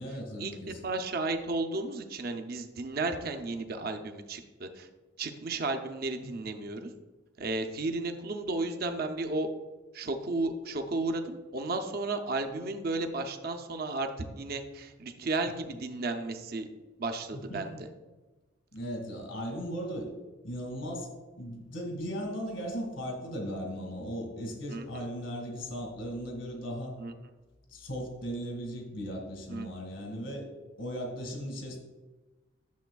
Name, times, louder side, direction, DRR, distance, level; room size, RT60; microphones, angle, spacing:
voice 1, 0.0-0.8 6.2-6.3 17.3-17.8 18.7-20.1 20.4-21.1 21.4-26.9 27.7-30.5 30.8-31.8, equal, 85° left, 1 dB, 1.7 m, -37 dB
voice 2, 0.8-4.9 5.2-6.9 7.4-9.5 9.9-14.1 14.4-16.7 17.0-17.8 24.7-25.1 27.0-27.1 29.5-29.7, right 2 dB, 50° right, 6 dB, 0.6 m, -33 dB
10.5 x 6.9 x 2.3 m, 1.2 s
head